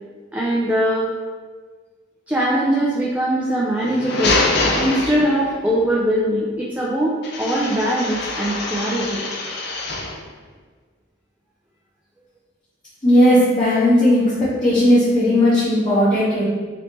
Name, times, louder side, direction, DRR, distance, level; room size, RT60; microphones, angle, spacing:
voice 1, 0.3-1.1 2.3-4.4 4.8-9.2, right 1 dB, 10° right, -6 dB, 0.4 m, -21 dB
sound 1, 3.7-5.7 7.2-10.2, left 3 dB, 60° left, 0.5 m, -24 dB
voice 2, 13.0-16.4, left 1 dB, 25° left, -14 dB, 0.9 m, -16 dB
3.1 x 3.1 x 2.8 m, 1.5 s
head